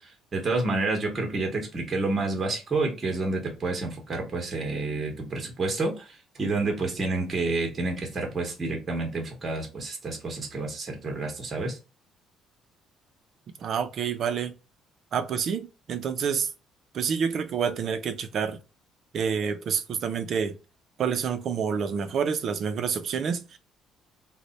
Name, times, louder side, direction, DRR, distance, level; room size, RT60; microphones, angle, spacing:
voice 1, 0.0-11.8, right 3 dB, 25° right, 0.8 m, -29 dB
voice 2, 13.6-14.5 15.1-16.5 16.9-18.6 19.1-20.6 21.0-23.6, right 6 dB, 45° right, 0.4 m, -28 dB
3.2 x 2.1 x 3.9 m
cardioid pair, 160°, 0 cm